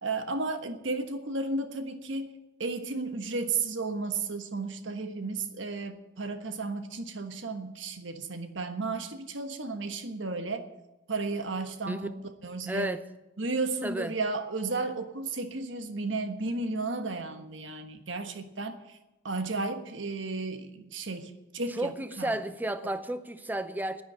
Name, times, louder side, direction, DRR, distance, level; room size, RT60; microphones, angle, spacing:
voice 1, 0.0-2.3 2.6-10.7 11.1-12.1 12.4-12.9 13.4-19.0 19.2-21.9 22.2-22.4, right 3 dB, 70° right, 1.3 m, -33 dB
voice 2, 12.7-13.0 13.8-14.2 21.7-24.0, right 1 dB, 10° right, 0.6 m, -32 dB
10.0 x 9.5 x 10.0 m
head